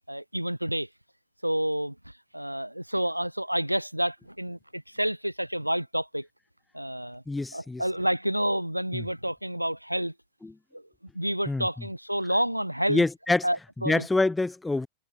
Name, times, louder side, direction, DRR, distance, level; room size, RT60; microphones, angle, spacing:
voice 1, 0.1-0.9 1.4-6.3 6.7-7.2 7.5-10.1 10.7-10.9 11.1-13.0 13.4-14.1, equal, 90° right, 5.4 m, -29 dB
voice 2, 7.3-7.8 8.9-9.0 10.4-10.5 11.5-11.7 12.9-13.5 13.8-14.9, left 2 dB, 10° left, 2.5 m, -26 dB
figure-of-eight pair, 90°, 0 cm